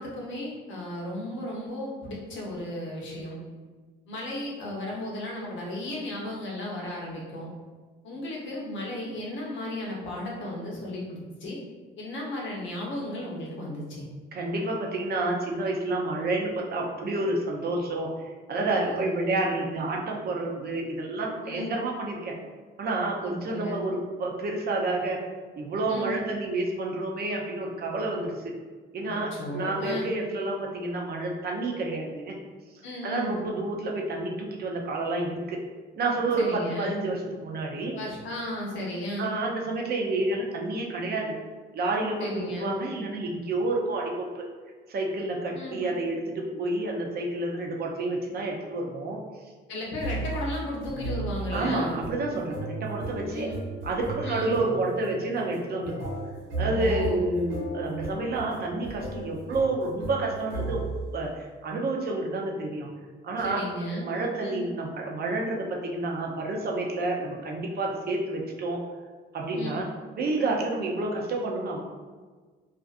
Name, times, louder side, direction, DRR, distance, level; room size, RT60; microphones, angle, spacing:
voice 1, 0.0-3.4 4.1-7.5 8.0-11.6 12.0-14.1 18.6-19.1 21.4-21.7 23.2-23.9 25.9-26.1 29.1-30.1 32.8-33.3 36.4-37.0 38.0-39.3 42.2-42.7 45.5-45.8 49.7-52.0 53.2-53.5 54.2-54.5 56.7-57.2 63.4-64.1 64.4-64.6 69.5-69.8, left 1 dB, 70° left, -3 dB, 0.8 m, -35 dB
voice 2, 14.3-18.1 18.5-22.3 22.8-25.2 25.6-28.3 28.9-32.4 33.0-35.6 35.9-38.0 39.2-41.4 41.7-44.3 44.9-49.2 51.5-53.5 53.8-56.1 56.6-60.8 61.1-62.9 63.2-63.6 64.0-68.8 69.3-69.9 70.1-71.8, right 2 dB, 55° right, 0 dB, 0.5 m, -29 dB
sound 1, 50.0-61.2, right 2 dB, 85° right, 1.0 m, -35 dB
2.4 x 2.4 x 2.4 m, 1.4 s
cardioid pair, 90°, 20 cm